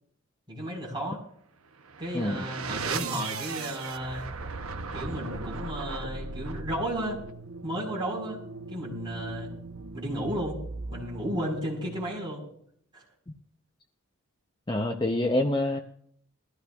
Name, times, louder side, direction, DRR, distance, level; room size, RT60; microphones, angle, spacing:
voice 1, 0.5-1.2 2.0-4.2 4.9-7.2 7.6-8.4 8.7-9.5 9.9-10.6 10.9-12.4 12.9-13.0, equal, 20° right, -2 dB, 4.5 m, -33 dB
sound 1, 1.7-12.5, right 4 dB, 85° right, 0.9 m, -38 dB
voice 2, 14.7-15.8, left 1 dB, 20° left, 4 dB, 0.7 m, -26 dB
21.5 x 14.5 x 2.4 m, 0.65 s
head